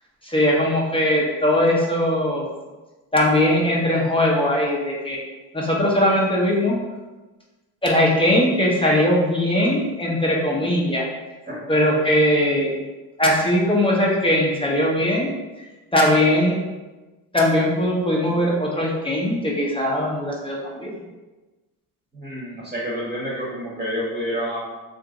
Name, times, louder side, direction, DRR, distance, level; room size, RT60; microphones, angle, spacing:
voice 1, 0.2-2.5 3.1-5.2 5.5-6.8 7.8-11.1 11.7-12.7 13.2-15.3 15.6-16.6 17.3-20.9, left 1 dB, 10° left, -4 dB, 0.7 m, -20 dB
voice 2, 22.1-24.6, equal, 15° right, -4 dB, 1.0 m, -28 dB
2.8 x 2.6 x 3.7 m, 1.2 s
supercardioid pair, 75°, 43 cm